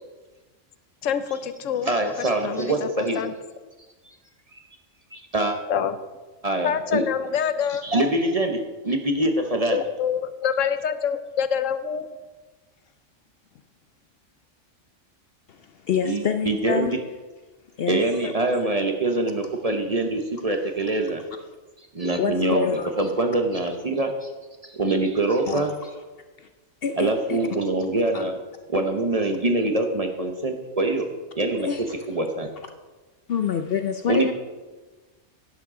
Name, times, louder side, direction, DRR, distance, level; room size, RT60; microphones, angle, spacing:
voice 1, 1.0-1.9 2.4-3.3 5.7-6.0 6.6-7.9 9.7-12.1 18.2-18.3, left 8 dB, 80° left, 12 dB, 1.0 m, -26 dB
voice 2, 1.8-3.2 5.1-5.6 6.4-7.0 7.8-9.8 16.0-17.0 17.9-21.2 21.9-22.7 23.0-24.3 24.6-25.7 27.0-28.4 28.7-31.1 31.4-31.7 32.1-32.5 34.1-34.3, right 2 dB, 35° right, 4 dB, 0.8 m, -24 dB
voice 3, 15.5-17.0 17.8-18.0 22.2-22.9 25.5-25.6 26.4-26.5 26.8-27.4 28.1-28.2 31.6-31.9 33.3-34.3, left 7 dB, 60° left, 7 dB, 0.7 m, -26 dB
11.5 x 10.5 x 3.7 m, 1.3 s
omnidirectional pair, 1.3 m